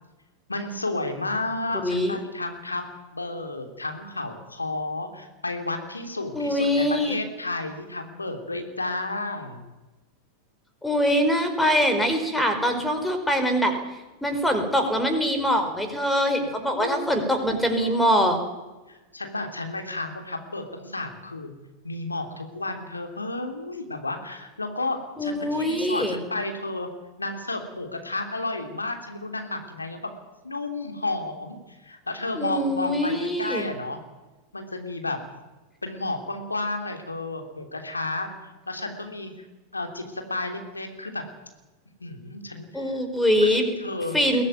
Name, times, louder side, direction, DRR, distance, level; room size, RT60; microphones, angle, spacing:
voice 1, 0.5-2.8 3.1-9.6 16.7-18.3 18.9-21.5 21.8-26.9 27.2-30.1 30.4-34.0 34.5-35.2 35.8-39.5 39.7-41.2 42.0-43.0 43.4-44.4, left 2 dB, 80° left, 5 dB, 3.2 m, -32 dB
voice 2, 1.8-2.2 6.3-7.2 10.8-13.7 14.2-18.4 25.2-26.2 32.3-33.7 42.7-43.7 44.1-44.4, equal, 5° left, 6 dB, 4.7 m, -23 dB
22.0 x 17.0 x 9.4 m, 1.1 s
figure-of-eight pair, 90°, 0 cm